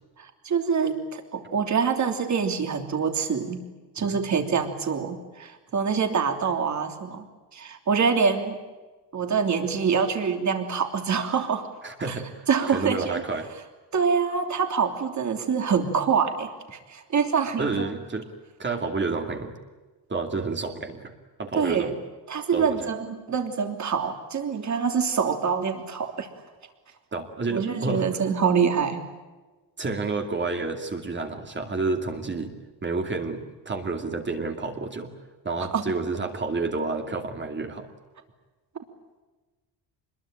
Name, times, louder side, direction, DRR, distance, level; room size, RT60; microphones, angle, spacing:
voice 1, 0.2-3.6 3.9-7.3 7.5-8.6 9.1-11.7 12.1-12.2 12.5-13.2 13.9-17.9 21.5-21.9 22.3-26.3 27.5-29.0 35.7-35.9, right 6 dB, 40° right, 6 dB, 3.2 m, -25 dB
voice 2, 11.8-13.5 17.6-18.3 18.6-19.6 20.1-21.1 21.4-22.0 22.5-22.9 27.1-28.1 29.8-32.5 32.8-35.1 35.4-37.9, right 3 dB, 25° right, 4 dB, 2.5 m, -30 dB
26.0 x 21.5 x 8.9 m, 1.2 s
cardioid pair, 160°, 42 cm